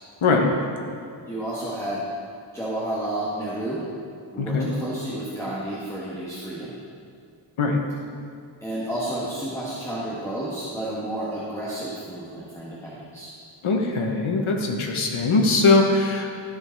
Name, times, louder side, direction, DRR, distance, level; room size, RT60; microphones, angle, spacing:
voice 1, 0.2-0.5 4.4-4.7 7.6-7.8 13.6-16.4, left 3 dB, 80° left, 2 dB, 1.3 m, -21 dB
voice 2, 1.3-2.0 2.5-3.8 4.3-6.7 8.6-13.3, right 1 dB, 5° left, -9 dB, 1.7 m, -31 dB
14.0 x 5.2 x 4.7 m, 2.3 s
wide cardioid pair, 105°, 48 cm